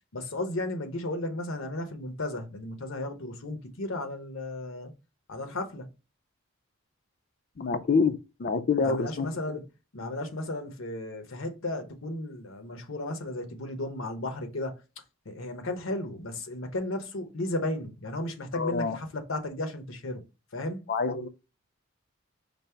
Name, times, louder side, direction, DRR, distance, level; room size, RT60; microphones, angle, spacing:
voice 1, 0.1-4.9 5.3-5.9 8.8-9.6 9.9-14.8 15.2-20.2 20.5-20.8, left 1 dB, 75° left, 0.9 m, -34 dB
voice 2, 7.6-9.6 18.5-19.0 20.9-21.3, left 4 dB, 50° left, 0.5 m, -27 dB
5.2 x 2.0 x 4.4 m
head